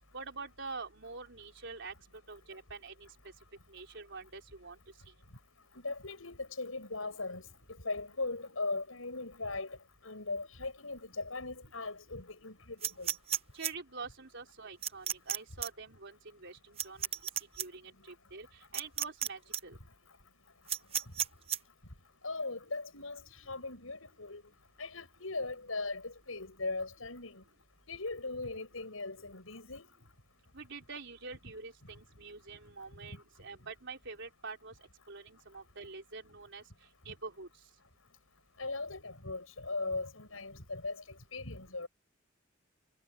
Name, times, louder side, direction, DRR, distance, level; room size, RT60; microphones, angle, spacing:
voice 1, 0.1-3.1 3.7-4.8 13.5-17.1 17.6-19.8 30.5-36.6 37.0-37.5, right 4 dB, 65° right, 4.2 m, -46 dB
voice 2, 5.7-7.4 7.8-9.8 10.0-13.1 22.2-24.4 24.8-27.4 27.9-29.9 38.6-41.0 41.3-41.9, left 3 dB, 90° left, 7.0 m, -39 dB
sound 1, 12.8-13.7 14.8-15.4 15.6-15.7 16.8-17.7 18.7-19.3 19.5-19.6 20.7-21.6, right 9 dB, 30° right, 0.7 m, -32 dB
head